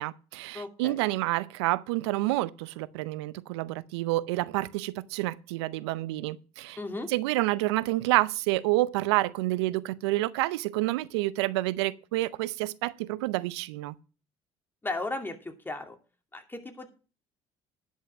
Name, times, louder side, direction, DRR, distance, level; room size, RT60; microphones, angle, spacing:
voice 1, 0.0-6.8 7.1-13.9, right 18 dB, 85° right, 0.5 m, -28 dB
voice 2, 0.5-1.0 6.8-7.1 14.8-15.9 16.3-16.9, left 2 dB, 15° left, 2.6 m, -35 dB
11.0 x 5.6 x 6.1 m
hypercardioid pair, 65°, 14 cm